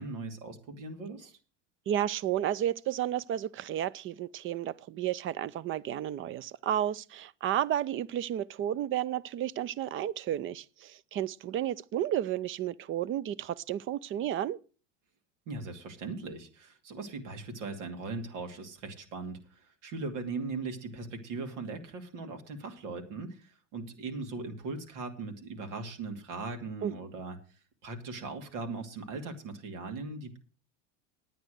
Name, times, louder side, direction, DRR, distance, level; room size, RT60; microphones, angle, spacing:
voice 1, 0.0-1.3 15.5-27.4 27.8-30.4, right 3 dB, 70° right, 2.6 m, -39 dB
voice 2, 1.9-14.6 26.8-26.9, right 11 dB, 35° right, 0.5 m, -32 dB
9.7 x 9.3 x 6.4 m
supercardioid pair, 105°, 37 cm